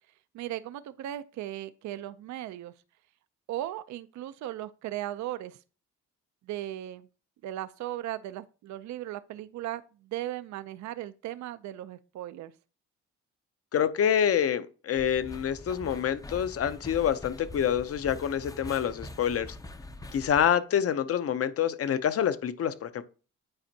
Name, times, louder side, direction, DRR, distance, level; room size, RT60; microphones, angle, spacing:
voice 1, 0.3-2.7 3.5-5.6 6.5-7.1 7.4-12.5, right 13 dB, 70° right, 0.5 m, -37 dB
voice 2, 13.7-19.6 20.1-23.0, left 9 dB, 50° left, 0.7 m, -27 dB
sound 1, 14.9-20.5, left 2 dB, 10° left, 0.5 m, -44 dB
8.9 x 4.3 x 2.7 m
cardioid pair, 90°, 30 cm